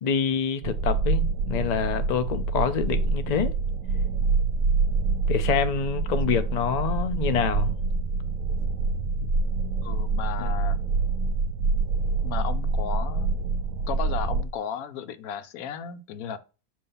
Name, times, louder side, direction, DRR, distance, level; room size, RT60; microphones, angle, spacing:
voice 1, 0.0-3.5 5.3-7.8 9.2-9.3 10.4-10.5, left 7 dB, 60° left, 0.4 m, -26 dB
sound 1, 0.6-14.4, right 4 dB, 75° right, 1.0 m, -26 dB
voice 2, 9.8-10.8 12.2-13.3 13.9-16.4, left 8 dB, 80° left, 1.1 m, -34 dB
6.8 x 2.8 x 5.4 m
omnidirectional pair, 1.5 m